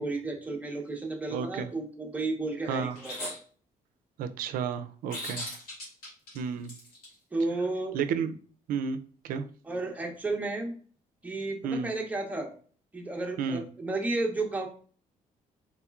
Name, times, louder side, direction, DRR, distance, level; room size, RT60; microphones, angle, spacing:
voice 1, 0.0-3.3 7.3-8.0 9.6-10.7 11.2-12.5 12.9-14.7, right 2 dB, 10° right, 1 dB, 0.7 m, -32 dB
voice 2, 1.3-1.7 2.7-3.0 4.2-5.5 6.3-6.7 7.9-8.3 8.7-9.0 9.2-9.5 11.6-11.9 13.4-13.6, right 6 dB, 80° right, 10 dB, 0.4 m, -31 dB
sound 1, 2.9-3.4 5.1-7.1, left 1 dB, 90° left, 1.7 m, -38 dB
3.8 x 2.9 x 2.3 m, 0.43 s
cardioid pair, 135°, 14 cm